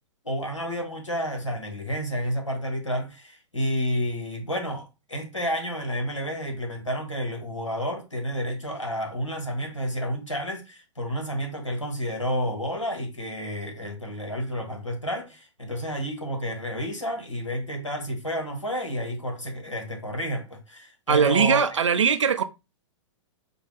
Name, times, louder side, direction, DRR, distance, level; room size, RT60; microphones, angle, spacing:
voice 1, 0.2-21.6, equal, 90° left, 1.2 m, -30 dB
voice 2, 21.1-22.4, right 6 dB, 75° right, 0.5 m, -20 dB
4.4 x 2.1 x 3.3 m
figure-of-eight pair, 110°, 16 cm